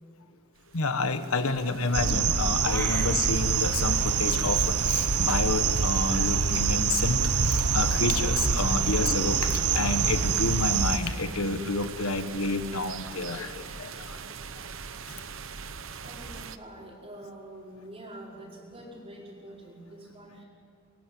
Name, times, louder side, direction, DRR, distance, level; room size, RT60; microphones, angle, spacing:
sound 1, 0.6-16.6, right 5 dB, 60° right, 1.0 m, -41 dB
voice 1, 0.7-7.2 7.4-13.9, left 3 dB, 75° left, 9 dB, 1.4 m, -29 dB
sound 2, 1.9-11.0, right 6 dB, 90° right, 1.2 m, -25 dB
sound 3, 2.6-3.1, left 1 dB, 10° left, 3.1 m, -36 dB
voice 2, 2.7-3.0 16.0-20.5, right 1 dB, 25° right, -2 dB, 5.0 m, -46 dB
24.0 x 23.0 x 9.7 m, 2.3 s
head